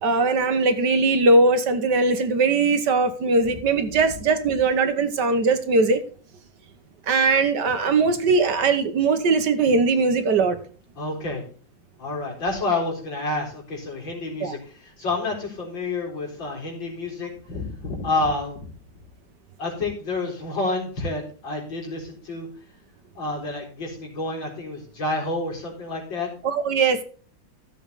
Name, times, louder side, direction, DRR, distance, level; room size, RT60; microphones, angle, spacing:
voice 1, 0.0-6.0 7.1-10.6 14.4-14.6 26.4-27.0, right 3 dB, 65° right, 9 dB, 1.8 m, -20 dB
voice 2, 11.0-11.4 12.0-18.7 19.6-22.5 23.2-26.3, left 2 dB, 80° left, -1 dB, 4.8 m, -29 dB
14.5 x 7.4 x 4.1 m, 0.42 s
omnidirectional pair, 2.0 m